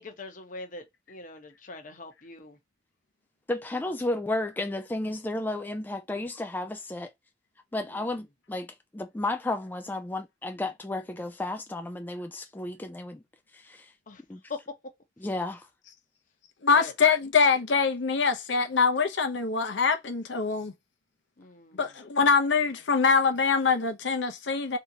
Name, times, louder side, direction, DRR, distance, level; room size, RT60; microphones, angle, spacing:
voice 1, 0.0-2.6 7.9-8.1 14.1-14.2 14.5-14.6 16.7-16.9 21.4-21.9, left 3 dB, 45° left, 0.9 m, -42 dB
voice 2, 3.5-7.1 7.7-13.2 13.5-13.9 14.3-14.4 15.2-15.7, left 2 dB, 10° left, 0.3 m, -33 dB
voice 3, 16.6-20.7 21.8-24.8, left 5 dB, 75° left, 0.8 m, -24 dB
3.5 x 2.8 x 2.7 m
head